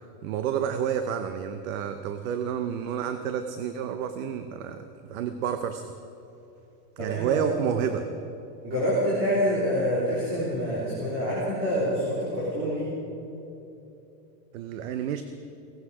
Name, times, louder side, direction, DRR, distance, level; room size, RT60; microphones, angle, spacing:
voice 1, 0.2-5.9 7.0-8.1 14.5-15.2, right 8 dB, 55° right, 9 dB, 0.8 m, -30 dB
voice 2, 7.0-7.5 8.6-12.9, equal, 25° right, -7 dB, 3.5 m, -26 dB
17.5 x 16.0 x 4.9 m, 2.9 s
supercardioid pair, 170°, 48 cm